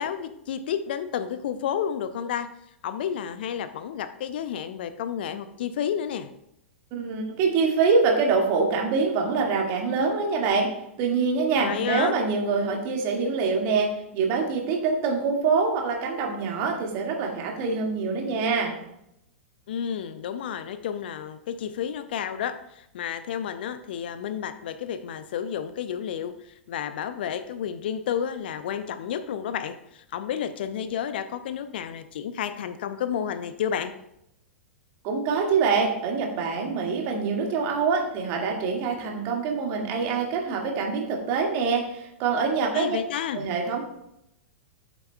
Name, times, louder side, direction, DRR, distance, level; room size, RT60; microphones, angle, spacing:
voice 1, 0.0-2.5 2.8-6.3 11.6-12.2 19.7-33.9 42.7-43.5, left 8 dB, 50° left, 12 dB, 0.5 m, -31 dB
voice 2, 6.9-10.7 11.0-18.7 35.0-43.0 43.3-43.8, right 4 dB, 35° right, 1 dB, 1.9 m, -25 dB
12.0 x 7.0 x 2.3 m, 0.79 s
figure-of-eight pair, 100°, 7 cm